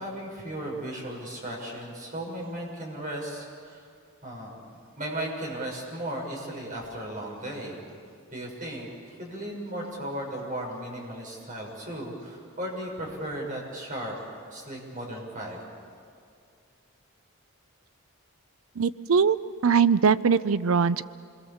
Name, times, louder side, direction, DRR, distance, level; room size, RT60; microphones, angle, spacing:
voice 1, 0.0-3.9 4.2-4.6 5.0-7.8 8.3-14.1 14.5-15.6, right 1 dB, 40° right, -2 dB, 6.4 m, -36 dB
voice 2, 18.8-19.4 19.6-21.0, right 6 dB, 80° right, 16 dB, 0.6 m, -21 dB
28.0 x 22.0 x 7.1 m, 2.3 s
head